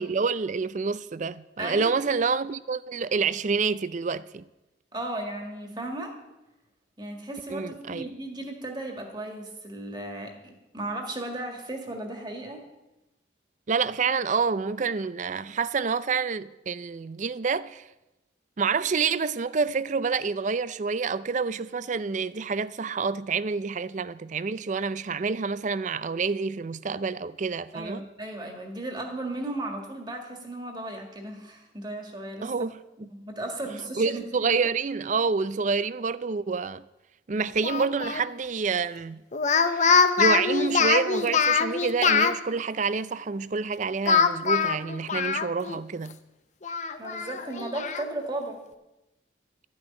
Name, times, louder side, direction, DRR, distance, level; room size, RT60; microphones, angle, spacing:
voice 1, 0.0-4.4 7.5-8.1 13.7-17.8 18.6-28.1 32.4-33.1 34.0-36.8 37.3-39.2 39.7-39.9 40.2-46.2, right 5 dB, 40° right, 0.4 m, -28 dB
voice 2, 1.6-2.0 4.9-6.1 7.0-12.7 27.7-32.5 33.1-34.5 47.0-48.6, right 1 dB, 25° right, 2.0 m, -35 dB
Speech, 37.6-38.2 39.3-42.4 44.1-45.8 46.1-46.2 46.6-48.1, left 5 dB, 40° left, 0.7 m, -23 dB
13.0 x 6.3 x 9.7 m
head